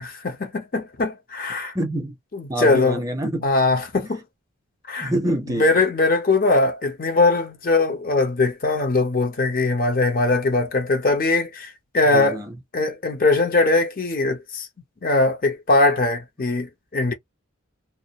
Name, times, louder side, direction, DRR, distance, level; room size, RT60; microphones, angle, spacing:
voice 1, 0.0-1.7 2.6-3.0 3.4-4.2 4.9-5.1 5.5-12.4 12.7-14.7 15.0-17.1, left 3 dB, 40° left, 0.6 m, -21 dB
voice 2, 1.7-2.1 2.5-3.5 5.0-5.7 12.1-12.5, right 1 dB, 15° right, 0.5 m, -26 dB
2.3 x 2.0 x 2.7 m
head